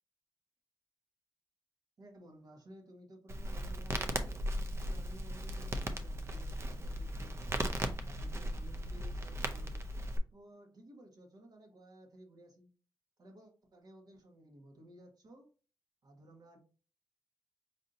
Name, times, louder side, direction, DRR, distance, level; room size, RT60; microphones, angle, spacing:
voice 1, 2.0-4.5 4.7-7.6 8.0-9.8 10.3-12.7 13.2-15.5 16.0-16.6, right 1 dB, 55° right, 2 dB, 1.3 m, -56 dB
Crackle, 3.3-10.2, right 1 dB, 35° right, 0.5 m, -37 dB
5.2 x 2.7 x 2.6 m, 0.36 s
wide cardioid pair, 145°, 8 cm